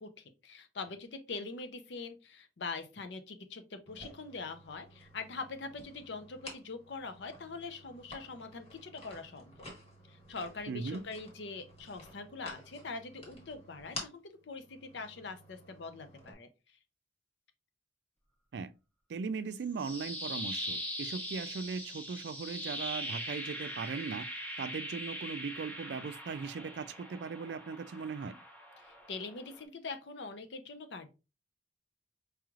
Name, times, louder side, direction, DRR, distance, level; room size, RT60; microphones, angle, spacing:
voice 1, 0.0-9.7 10.1-16.8 28.8-31.1, left 4 dB, 75° left, 0.6 m, -43 dB
sound 1, 3.9-16.3, left 1 dB, 35° left, 1.3 m, -51 dB
voice 2, 10.7-11.0 18.5-18.7 19.1-24.3 24.6-28.3, right 5 dB, 65° right, 0.3 m, -38 dB
sound 2, 19.5-29.6, equal, 10° left, 0.9 m, -41 dB
4.8 x 3.1 x 2.4 m
head